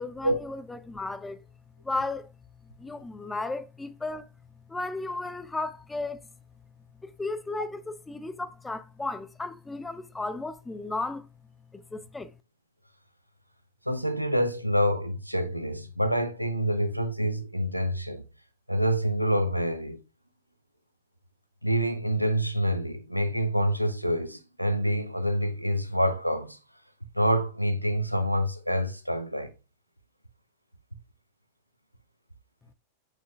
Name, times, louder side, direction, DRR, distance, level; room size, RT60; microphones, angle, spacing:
voice 1, 0.0-1.4 1.8-2.3 2.8-4.3 4.7-6.3 7.0-11.3 11.7-12.3, left 2 dB, 10° left, 0.5 m, -34 dB
voice 2, 13.9-18.2 18.7-20.0 21.6-26.6 27.1-29.5, equal, 90° right, 0.8 m, -27 dB
6.8 x 6.2 x 2.2 m
figure-of-eight pair, 90°, 0 cm